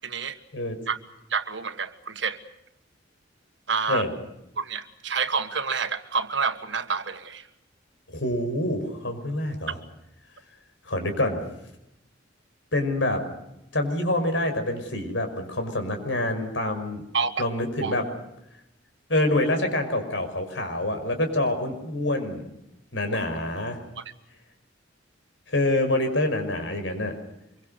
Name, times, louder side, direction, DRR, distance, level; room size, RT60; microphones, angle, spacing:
voice 1, 0.0-0.4 0.9-1.0 1.3-2.4 3.7-4.0 4.6-7.4 17.1-17.3 17.8-18.0 23.1-23.2 24.0-24.1, right 5 dB, 70° right, 9 dB, 1.7 m, -28 dB
voice 2, 8.1-9.7 10.9-11.4 12.7-13.2 13.7-17.0 17.4-18.0 19.1-22.4 22.9-23.8 25.5-27.2, left 1 dB, 80° left, 6 dB, 5.6 m, -26 dB
26.0 x 23.5 x 6.6 m, 0.86 s
head